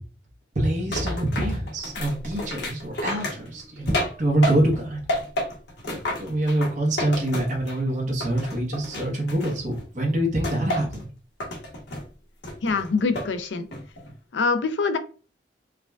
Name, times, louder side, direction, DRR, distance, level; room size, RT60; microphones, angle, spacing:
voice 1, 0.5-5.0 5.9-11.1, right 1 dB, 45° right, 1.0 m, -25 dB
sound 1, 0.9-4.8 5.1-7.9 8.2-9.8 10.4-11.0 11.4-12.0 12.4-13.3 13.7-14.1, left 1 dB, 65° left, 1.1 m, -31 dB
voice 2, 12.6-13.7 14.3-15.0, left 4 dB, 85° left, 0.5 m, -24 dB
4.7 x 2.3 x 2.3 m
head